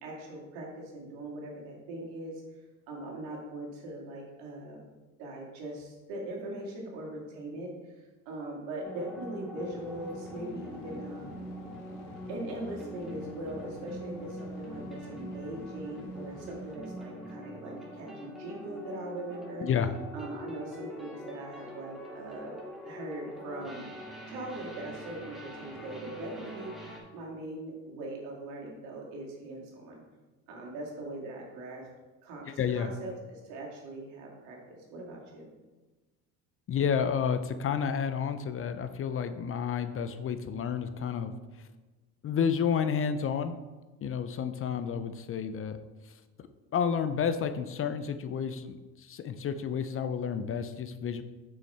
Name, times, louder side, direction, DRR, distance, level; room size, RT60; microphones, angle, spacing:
voice 1, 0.0-2.4 2.9-4.8 5.2-11.5 12.3-19.7 20.1-22.6 22.9-23.9 24.3-30.0 30.5-31.8 32.2-32.4 32.7-35.5, right 1 dB, 80° right, -2 dB, 2.2 m, -41 dB
sound 1, 8.8-27.0, equal, ahead, 2.3 m, -44 dB
sound 2, 9.6-16.8, left 2 dB, 75° left, 1.3 m, -52 dB
voice 2, 19.6-19.9 32.5-32.9 36.7-41.3 42.2-43.6 44.0-45.8 46.1-46.2 46.7-51.2, left 7 dB, 35° left, 11 dB, 0.5 m, -30 dB
6.4 x 5.6 x 4.3 m, 1.2 s
supercardioid pair, 90°, 39 cm